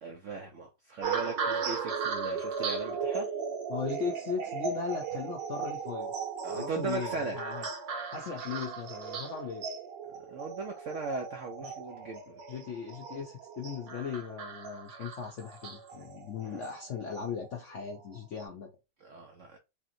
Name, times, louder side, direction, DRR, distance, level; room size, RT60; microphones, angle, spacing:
voice 1, 0.0-3.3 6.4-7.4 10.2-12.4 16.4-16.7 19.0-19.6, right 4 dB, 75° right, 0.7 m, -38 dB
sound 1, 1.0-17.5 18.1-18.4, right 6 dB, 90° right, 1.6 m, -37 dB
voice 2, 3.7-6.1 6.5-7.7 8.1-9.6 11.6-11.7 12.5-18.7, left 6 dB, 70° left, 0.7 m, -38 dB
3.4 x 2.8 x 2.5 m
omnidirectional pair, 1.9 m